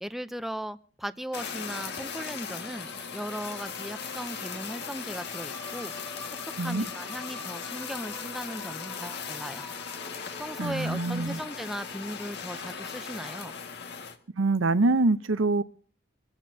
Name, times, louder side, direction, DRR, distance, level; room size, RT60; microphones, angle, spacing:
voice 1, 0.0-5.9 6.6-9.7 10.4-13.5, equal, ahead, 0.6 m, -37 dB
Fire, 1.3-14.2, left 6 dB, 60° left, 1.8 m, -38 dB
sound 1, 2.7-12.3, left 1 dB, 15° left, 2.4 m, -47 dB
voice 2, 10.6-11.4 14.4-15.6, right 3 dB, 85° right, 0.8 m, -25 dB
26.0 x 15.0 x 2.8 m
head